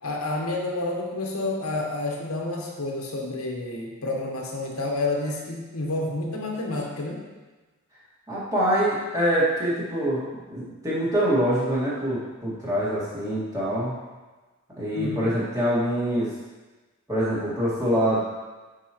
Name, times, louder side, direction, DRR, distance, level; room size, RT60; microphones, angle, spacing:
voice 1, 0.0-7.2 14.9-15.4, left 2 dB, 75° left, 0 dB, 1.2 m, -29 dB
voice 2, 8.3-10.2 10.5-14.0 14.8-16.3 17.1-18.2, equal, 15° right, -9 dB, 2.0 m, -24 dB
9.8 x 4.7 x 3.1 m, 1.2 s
head